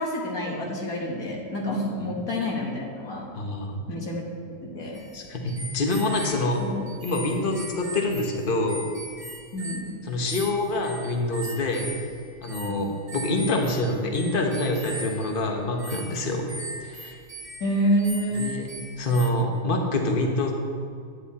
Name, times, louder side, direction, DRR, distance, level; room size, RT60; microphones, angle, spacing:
voice 1, 0.0-3.3 3.9-4.2 4.6-5.0 6.6-6.8 9.5-9.9 12.7-12.8 17.6-18.5, equal, 65° left, -2 dB, 1.9 m, -28 dB
voice 2, 3.3-3.8 5.1-6.6 7.0-8.9 10.0-11.9 12.4-16.5 16.8-17.2 18.3-18.6 19.0-20.5, left 2 dB, 35° left, 2 dB, 1.2 m, -26 dB
sound 1, 4.9-19.3, right 2 dB, 30° right, 0.8 m, -40 dB
9.8 x 9.2 x 4.2 m, 2.3 s
omnidirectional pair, 1.6 m